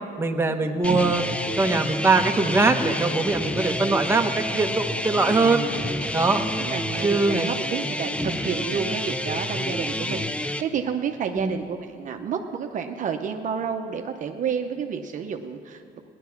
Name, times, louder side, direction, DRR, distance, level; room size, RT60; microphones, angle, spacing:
voice 1, 0.2-1.2 1.6-5.6 6.1-6.4 7.0-7.5 8.2-8.4 11.4-11.5, right 3 dB, 15° right, 4 dB, 1.1 m, -22 dB
sound 1, 0.8-10.6, left 1 dB, 5° left, 0.5 m, -29 dB
voice 2, 6.6-16.1, right 7 dB, 50° right, 5 dB, 0.8 m, -30 dB
17.5 x 11.0 x 5.9 m, 2.6 s
cardioid pair, 110°, 17 cm